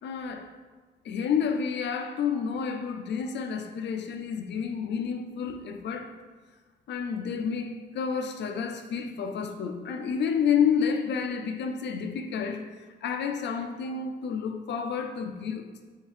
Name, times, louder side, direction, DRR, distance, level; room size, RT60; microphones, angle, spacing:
voice 1, 0.0-0.5 1.0-6.2 6.9-15.7, left 6 dB, 60° left, 0.5 m, -30 dB
4.7 x 3.5 x 3.2 m
cardioid pair, 90°, 20 cm